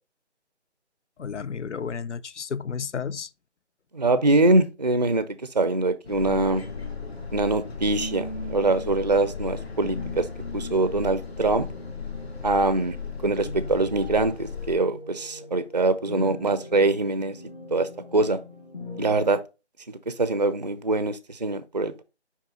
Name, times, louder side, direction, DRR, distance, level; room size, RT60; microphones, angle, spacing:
voice 1, 1.2-3.3, left 6 dB, 85° left, 0.5 m, -32 dB
voice 2, 3.9-5.3 5.5-6.6 7.3-10.3 10.5-11.7 12.4-13.0 13.2-17.3 17.7-18.4 19.0-19.4 19.9-22.0, right 2 dB, 40° right, 0.4 m, -23 dB
sound 1, 6.0-14.8, left 6 dB, 60° left, 1.5 m, -36 dB
sound 2, 6.0-19.3, left 1 dB, 45° left, 1.9 m, -41 dB
5.5 x 4.8 x 3.8 m
figure-of-eight pair, 160°, 35 cm